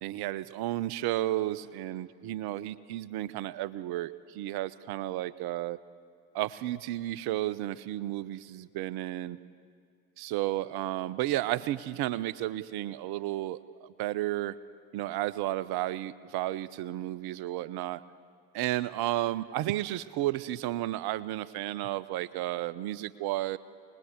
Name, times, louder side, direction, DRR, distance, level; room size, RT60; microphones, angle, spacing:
voice 1, 0.0-5.8 6.3-9.4 10.2-14.5 14.9-18.0 18.5-23.6, right 15 dB, 60° right, 16 dB, 0.8 m, -32 dB
26.0 x 20.5 x 8.2 m, 2.2 s
figure-of-eight pair, 45°, 42 cm